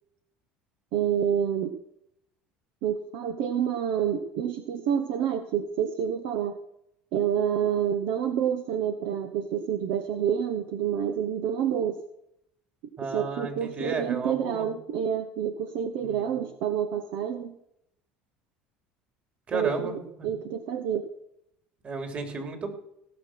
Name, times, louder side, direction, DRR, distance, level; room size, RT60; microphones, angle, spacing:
voice 1, 0.9-1.7 2.8-6.6 7.1-12.0 13.1-17.5 19.5-21.1, right 9 dB, 70° right, 8 dB, 1.0 m, -28 dB
voice 2, 13.0-14.7 16.0-16.4 19.5-20.3 21.8-22.7, right 4 dB, 35° right, 5 dB, 3.2 m, -33 dB
17.5 x 6.0 x 6.1 m, 0.77 s
hypercardioid pair, 80°, 4 cm